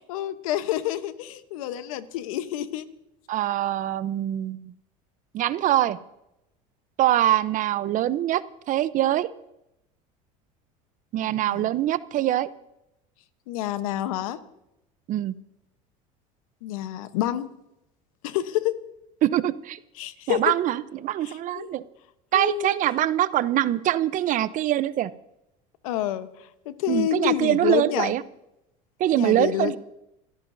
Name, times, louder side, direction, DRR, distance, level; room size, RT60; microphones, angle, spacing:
voice 1, 0.1-2.9 11.2-11.7 13.5-14.4 16.6-17.5 18.2-18.8 20.0-20.5 21.2-21.7 22.3-22.7 25.8-28.1 29.1-29.8, left 13 dB, 80° left, 11 dB, 1.0 m, -28 dB
voice 2, 3.3-4.7 5.3-6.0 7.0-8.4 8.7-9.3 11.1-12.5 15.1-15.3 19.2-19.8 20.3-21.8 22.3-25.1 26.9-28.2 29.0-29.8, right 13 dB, 50° right, 15 dB, 0.8 m, -23 dB
27.0 x 14.0 x 2.7 m, 0.88 s
supercardioid pair, 95°, 18 cm